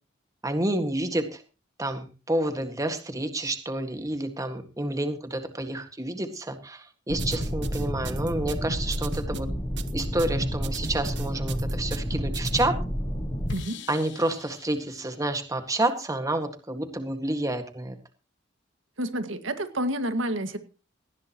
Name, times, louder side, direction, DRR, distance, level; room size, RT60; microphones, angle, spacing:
voice 1, 0.4-1.4 1.8-9.5 9.9-12.7 13.9-18.0, right 1 dB, 20° right, 7 dB, 1.8 m, -29 dB
sound 1, 7.1-13.5, equal, 20° left, 4.0 m, -30 dB
sound 2, 7.2-12.7, right 4 dB, 60° right, 1.0 m, -38 dB
sound 3, 9.1-9.2 11.2-11.3 13.5-15.9, left 3 dB, 65° left, 1.2 m, -42 dB
voice 2, 19.0-20.6, right 1 dB, 85° right, 8 dB, 1.9 m, -29 dB
18.5 x 16.0 x 3.0 m, 0.34 s
head